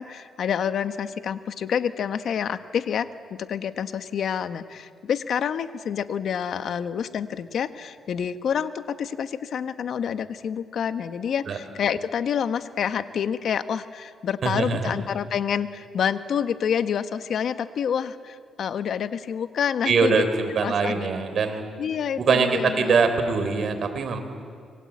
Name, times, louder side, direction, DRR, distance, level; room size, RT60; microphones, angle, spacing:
voice 1, 0.0-20.2 20.6-21.1 21.8-23.0, left 8 dB, 65° left, 11 dB, 1.2 m, -28 dB
voice 2, 14.4-14.9 19.9-21.6 22.2-24.2, right 5 dB, 55° right, 7 dB, 3.7 m, -23 dB
26.5 x 23.5 x 8.6 m, 2.2 s
cardioid pair, 100°, 0 cm